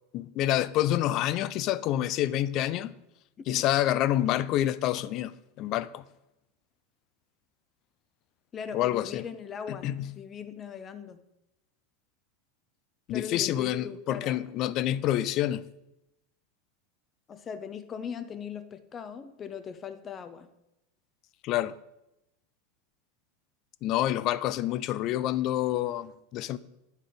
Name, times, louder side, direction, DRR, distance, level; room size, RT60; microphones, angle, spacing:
voice 1, 0.1-2.9 3.5-6.0 8.7-9.3 9.7-10.1 13.1-15.6 21.4-21.7 23.8-26.6, left 13 dB, 50° left, 0.4 m, -28 dB
voice 2, 8.5-11.2 13.1-14.4 17.3-20.5, left 7 dB, 30° left, 0.7 m, -39 dB
9.3 x 4.1 x 5.0 m
hypercardioid pair, 105°, 0 cm